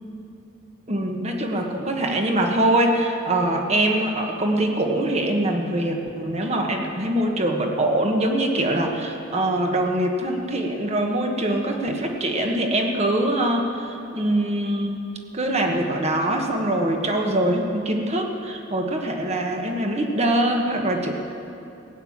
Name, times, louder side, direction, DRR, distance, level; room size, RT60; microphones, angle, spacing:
voice 1, 0.9-15.0 15.3-21.1, right 1 dB, 35° right, 2 dB, 1.5 m, -23 dB
17.0 x 9.3 x 7.4 m, 2.7 s
head